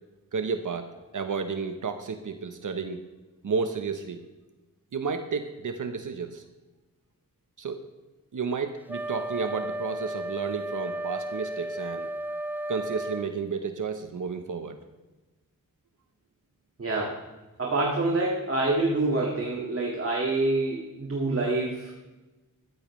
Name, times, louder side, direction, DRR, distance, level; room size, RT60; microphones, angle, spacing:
voice 1, 0.3-3.0 3.4-4.2 4.9-6.4 7.6-7.8 8.3-12.1 12.7-14.8, right 5 dB, 65° right, 7 dB, 1.0 m, -32 dB
Wind instrument woodwind instrument, 8.9-13.3, right 1 dB, 5° right, 0.3 m, -34 dB
voice 2, 16.8-17.2 17.6-21.9, right 2 dB, 40° right, -2 dB, 2.0 m, -26 dB
14.0 x 14.0 x 3.2 m, 1.1 s
wide cardioid pair, 100°, 33 cm